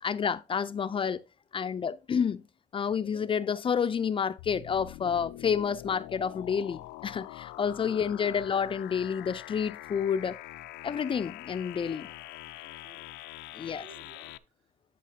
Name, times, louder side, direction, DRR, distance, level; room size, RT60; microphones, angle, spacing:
voice 1, 0.0-1.2 1.5-2.4 2.7-10.4 10.8-12.1 13.5-13.8, left 7 dB, 30° left, 0.4 m, -29 dB
sound 1, 4.4-14.4, left 16 dB, 90° left, 0.5 m, -44 dB
voice 2, 7.6-8.2 12.6-13.2 13.5-14.7, right 3 dB, 75° right, 4.1 m, -57 dB
11.5 x 5.8 x 2.8 m
cardioid pair, 110°, 17 cm